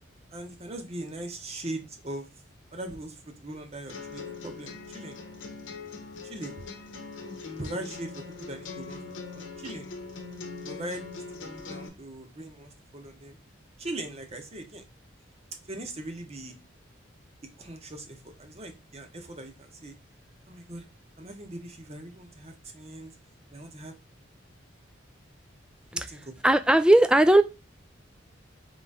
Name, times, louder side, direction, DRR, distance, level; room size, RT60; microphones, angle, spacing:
voice 1, 0.3-2.3 2.7-5.2 6.2-6.7 7.6-9.0 9.3-9.9 10.7-13.4 13.8-14.9 15.7-16.6 17.6-19.9 20.5-20.9 21.2-23.1 23.5-23.9 25.9-26.3, right 1 dB, 35° right, 5 dB, 0.8 m, -40 dB
sound 1, 3.9-11.9, left 4 dB, 80° left, 0.8 m, -41 dB
voice 2, 26.4-27.4, right 1 dB, 5° right, 10 dB, 0.3 m, -18 dB
3.9 x 3.0 x 3.5 m, 0.26 s
head